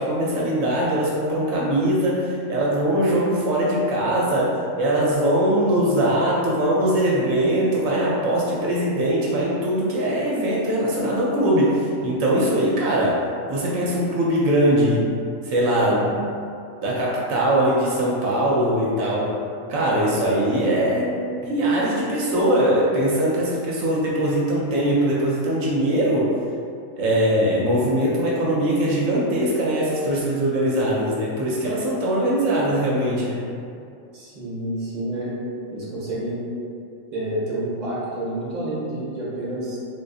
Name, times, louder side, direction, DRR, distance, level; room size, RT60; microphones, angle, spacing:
voice 1, 0.0-15.1 15.4-16.3 16.8-19.4 19.7-26.3 27.0-33.4, right 1 dB, 80° right, -5 dB, 1.0 m, -21 dB
voice 2, 34.1-35.3 35.7-36.4 37.1-39.8, right 1 dB, 35° right, -8 dB, 0.9 m, -29 dB
3.7 x 2.6 x 2.3 m, 2.4 s
omnidirectional pair, 1.4 m